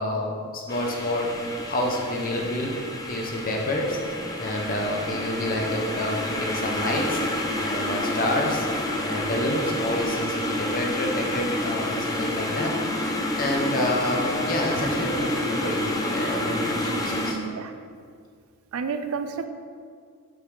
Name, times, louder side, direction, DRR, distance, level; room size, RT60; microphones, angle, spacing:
voice 1, 0.0-1.3 1.7-2.7 3.1-4.0 4.4-7.2 7.6-8.7 9.0-12.7 13.4-15.8 16.1-17.4, left 1 dB, 40° left, 0 dB, 0.9 m, -28 dB
sound 1, 0.7-17.3, left 1 dB, 15° left, 0.5 m, -29 dB
voice 2, 16.8-17.7 18.7-19.5, right 5 dB, 70° right, 8 dB, 0.4 m, -31 dB
6.2 x 4.1 x 4.7 m, 2.1 s
head